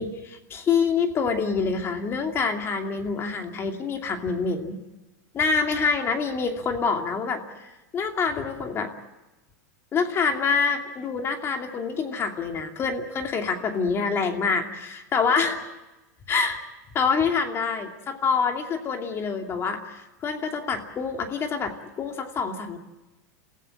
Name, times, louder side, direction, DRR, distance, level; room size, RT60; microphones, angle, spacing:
voice 1, 0.0-4.8 5.3-8.9 9.9-15.6 16.3-16.6 16.9-22.8, left 5 dB, 30° left, 4 dB, 2.7 m, -26 dB
28.0 x 15.5 x 8.7 m, 1.1 s
supercardioid pair, 125°, 9 cm